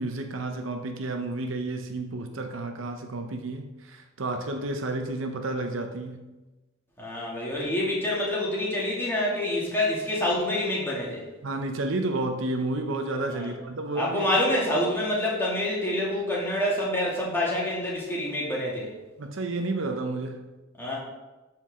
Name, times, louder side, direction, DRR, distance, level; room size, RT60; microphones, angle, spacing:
voice 1, 0.0-6.3 11.4-14.3 19.2-20.5, right 2 dB, 70° right, 5 dB, 0.7 m, -31 dB
voice 2, 7.0-11.2 13.3-13.5 14.0-18.9 20.8-21.0, left 1 dB, 10° left, -5 dB, 2.3 m, -27 dB
12.5 x 4.7 x 3.7 m, 1.1 s
head